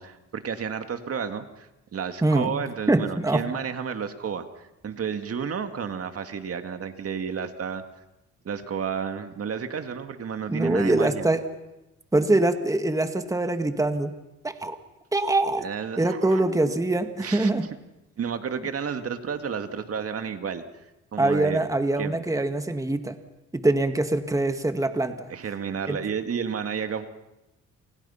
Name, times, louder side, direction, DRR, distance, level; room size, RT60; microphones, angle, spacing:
voice 1, 0.0-7.8 8.4-11.3 15.6-16.5 17.2-17.5 18.2-21.6 22.0-22.2 25.3-27.1, right 7 dB, 50° right, 8 dB, 2.0 m, -32 dB
voice 2, 2.2-2.5 2.9-3.5 10.5-11.4 12.1-14.1 14.4-14.8 15.1-15.6 16.0-17.7 21.2-23.2 23.5-25.3 25.9-26.0, right 2 dB, 10° right, 8 dB, 1.9 m, -23 dB
29.5 x 27.5 x 5.7 m, 0.95 s
cardioid pair, 90°, 30 cm